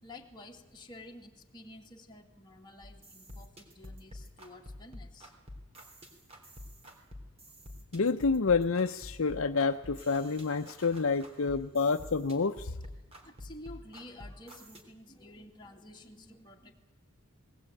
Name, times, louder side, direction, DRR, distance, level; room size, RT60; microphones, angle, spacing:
voice 1, 0.0-5.3 13.2-16.7, left 1 dB, 20° left, 1 dB, 2.2 m, -51 dB
sound 1, 2.8-14.8, left 1 dB, 30° right, 3.4 m, -49 dB
voice 2, 7.9-12.7, left 4 dB, 70° left, 6 dB, 0.7 m, -28 dB
20.0 x 18.5 x 9.1 m, 1.1 s
head